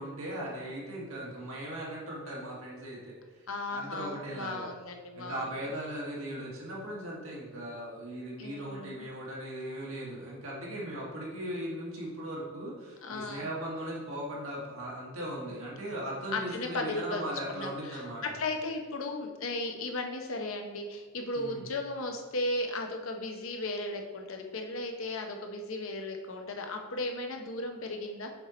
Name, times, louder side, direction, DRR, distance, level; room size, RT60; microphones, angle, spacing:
voice 1, 0.0-3.2 3.7-4.7 5.2-18.2 21.3-21.6, right 1 dB, 90° right, -4 dB, 2.0 m, -38 dB
voice 2, 3.5-5.5 8.4-9.1 13.0-13.5 16.3-17.2 17.5-28.3, left 2 dB, 80° left, 3 dB, 0.8 m, -36 dB
6.6 x 4.4 x 4.2 m, 1.4 s
head